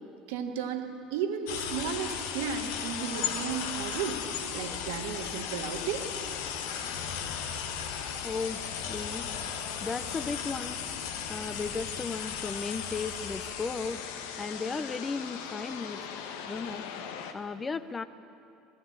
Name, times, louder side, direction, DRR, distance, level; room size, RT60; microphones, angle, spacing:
voice 1, 0.3-4.2 4.5-6.1, right 7 dB, 60° right, 5 dB, 1.6 m, -34 dB
sound 1, 1.5-17.3, left 7 dB, 65° left, 1.4 m, -36 dB
voice 2, 8.2-8.6 8.9-10.8 11.3-14.0 14.4-16.1 16.4-16.9 17.3-18.0, left 4 dB, 20° left, 13 dB, 0.9 m, -35 dB
21.5 x 15.5 x 8.7 m, 2.6 s
figure-of-eight pair, 65°, 0 cm